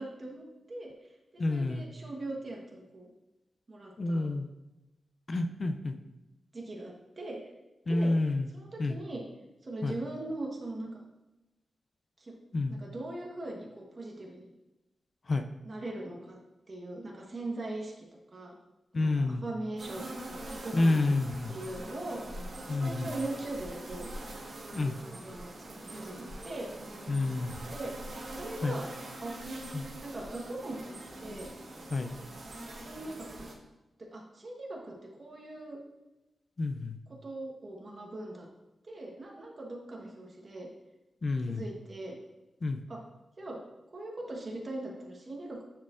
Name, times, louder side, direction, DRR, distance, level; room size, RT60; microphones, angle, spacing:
voice 1, 0.0-3.1 3.7-4.3 6.5-7.4 7.9-9.2 9.6-10.9 12.2-12.4 12.7-14.5 15.6-16.4 16.7-18.5 18.9-21.0 21.5-24.1 24.7-26.7 27.0-27.1 27.7-27.9 28.3-28.9 29.2-29.3 30.0-31.5 32.7-33.3 34.0-35.8 37.2-38.5 38.8-40.7 41.5-42.2 42.9-43.0 43.4-43.6 43.9-45.7, right 2 dB, 35° right, -1 dB, 1.2 m, -41 dB
voice 2, 1.4-1.9 4.0-4.5 5.3-6.0 7.9-8.5 8.8-9.0 9.8-10.0 12.5-12.8 15.3-15.4 18.9-19.4 20.7-21.5 22.7-23.1 24.7-25.0 27.1-27.5 28.6-28.8 29.7-29.9 31.9-32.1 36.6-37.0 41.2-41.6 42.6-42.8, left 2 dB, 35° left, 6 dB, 0.4 m, -29 dB
sound 1, 19.8-33.5, right 1 dB, 60° right, 1.4 m, -43 dB
9.3 x 4.4 x 2.5 m, 1.0 s
wide cardioid pair, 155°, 0 cm